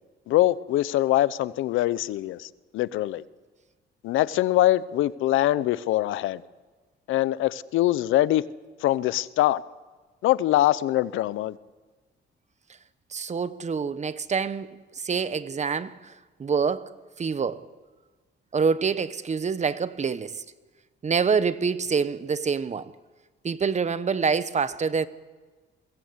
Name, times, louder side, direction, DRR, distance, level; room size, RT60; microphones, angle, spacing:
voice 1, 0.3-3.2 4.0-6.4 7.1-8.4 8.8-9.6 10.2-11.6, left 14 dB, 85° left, 0.7 m, -23 dB
voice 2, 13.1-16.1 16.4-16.9 17.2-17.6 18.5-20.4 21.0-22.9 23.4-25.1, right 5 dB, 35° right, 1.0 m, -26 dB
22.5 x 17.5 x 8.2 m
cardioid pair, 90°, 20 cm